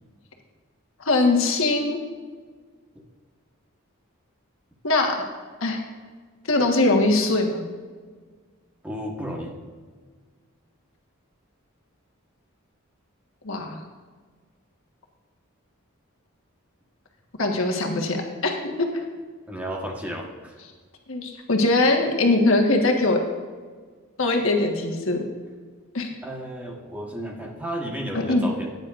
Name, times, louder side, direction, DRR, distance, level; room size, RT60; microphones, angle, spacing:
voice 1, 1.0-2.0 4.8-5.2 5.6-5.8 6.5-7.6 13.4-13.8 17.4-18.5 18.8-18.9 21.1-23.2 24.2-25.2 25.9-26.1 28.1-28.5, left 2 dB, 70° left, 1 dB, 1.4 m, -21 dB
voice 2, 8.8-9.5 19.5-20.6 26.2-28.7, equal, 5° right, -1 dB, 1.3 m, -33 dB
15.0 x 9.7 x 2.5 m, 1.5 s
head